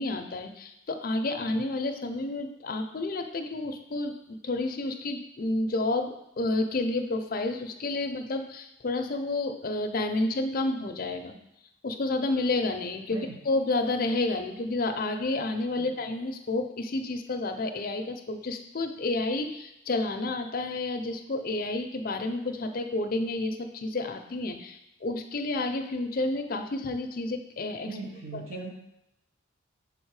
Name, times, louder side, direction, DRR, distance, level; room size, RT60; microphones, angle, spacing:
voice 1, 0.0-11.4 11.8-28.0 28.3-28.6, left 2 dB, 45° left, 6 dB, 0.5 m, -30 dB
voice 2, 27.9-28.7, right 3 dB, 80° right, -3 dB, 1.0 m, -39 dB
6.8 x 3.6 x 4.7 m, 0.85 s
head